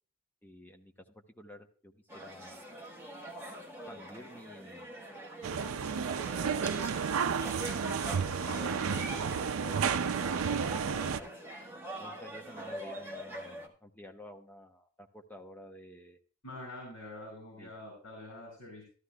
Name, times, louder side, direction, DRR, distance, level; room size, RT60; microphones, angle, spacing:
voice 1, 0.4-2.6 3.9-5.0 5.6-6.9 7.8-11.3 12.0-16.2 17.6-17.7, left 1 dB, 10° left, 4 dB, 0.8 m, -51 dB
sound 1, 2.1-13.7, right 1 dB, 10° right, 1.3 m, -44 dB
sound 2, 5.4-11.2, right 6 dB, 75° right, 0.5 m, -32 dB
voice 2, 16.4-18.8, left 1 dB, 60° left, -1 dB, 3.9 m, -46 dB
13.5 x 13.0 x 2.3 m, 0.41 s
head